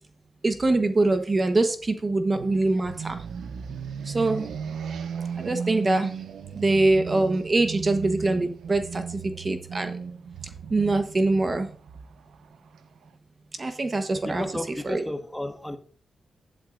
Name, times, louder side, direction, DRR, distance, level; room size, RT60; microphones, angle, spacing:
voice 1, 0.4-3.2 4.1-4.5 5.4-6.1 6.5-9.9 10.7-11.7 13.6-14.4 14.9-15.0, right 2 dB, 35° right, 1.1 m, -24 dB
sound 1, 2.3-13.1, right 6 dB, 85° right, 0.6 m, -36 dB
voice 2, 14.2-15.8, left 1 dB, 10° left, 1.4 m, -32 dB
10.5 x 8.9 x 2.6 m
cardioid pair, 65°, 0 cm